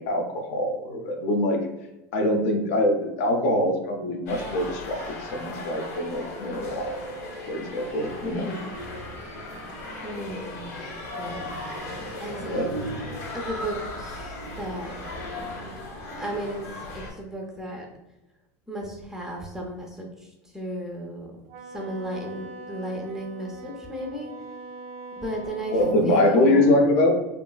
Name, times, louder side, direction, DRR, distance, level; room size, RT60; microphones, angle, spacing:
voice 1, 0.0-1.6 2.1-7.0 7.5-8.5 12.4-12.7 25.7-27.2, left 1 dB, 60° left, 4 dB, 0.5 m, -23 dB
sound 1, 4.3-17.1, left 1 dB, 85° left, 0.8 m, -36 dB
voice 2, 8.2-8.7 10.0-10.9 11.2-11.5 11.9-12.7 13.3-14.9 15.3-15.5 16.2-16.6 16.9-17.9 18.7-21.4 21.7-24.3 25.1-26.7, right 1 dB, 5° right, 0 dB, 0.4 m, -34 dB
Wind instrument woodwind instrument, 21.5-26.0, right 1 dB, 70° right, 0.4 m, -42 dB
3.0 x 2.4 x 2.2 m, 0.95 s
supercardioid pair, 160°, 9 cm